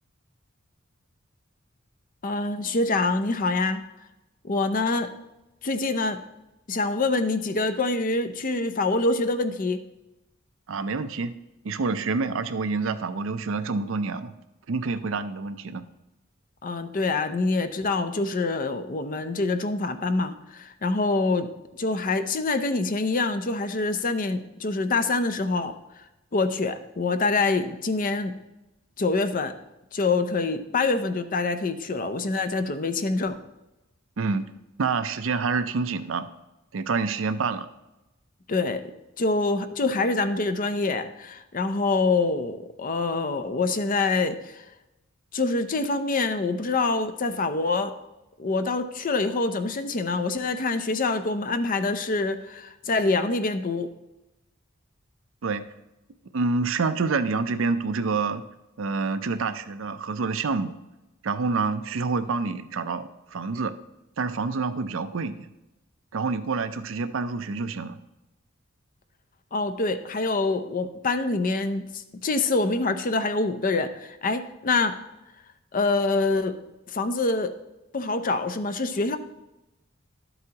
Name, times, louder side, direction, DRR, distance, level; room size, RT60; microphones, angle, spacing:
voice 1, 2.2-3.8 4.4-5.1 5.6-6.2 6.7-9.8 16.6-21.5 21.7-25.7 26.3-28.3 29.0-29.5 29.9-33.4 38.5-38.8 39.2-44.6 45.3-47.9 48.4-53.9 69.5-74.9 75.7-76.6 76.9-77.5 77.9-79.2, left 3 dB, 40° left, 10 dB, 0.6 m, -25 dB
voice 2, 10.7-11.3 11.6-14.3 14.7-15.8 34.2-34.5 34.8-36.3 36.7-37.7 55.4-55.6 56.3-58.4 58.8-60.8 61.2-63.7 64.2-65.5 66.1-68.0, right 4 dB, 70° right, 11 dB, 0.5 m, -27 dB
11.5 x 7.9 x 2.9 m, 0.96 s
head